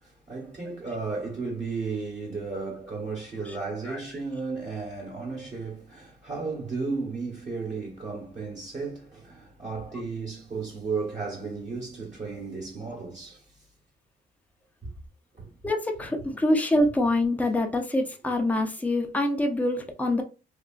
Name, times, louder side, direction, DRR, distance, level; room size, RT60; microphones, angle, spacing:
voice 1, 0.0-13.4 15.3-15.6, right 4 dB, 35° right, 1.2 m, -34 dB
voice 2, 15.6-20.2, left 1 dB, 5° left, 0.5 m, -25 dB
2.9 x 2.4 x 2.4 m
cardioid pair, 90°, 20 cm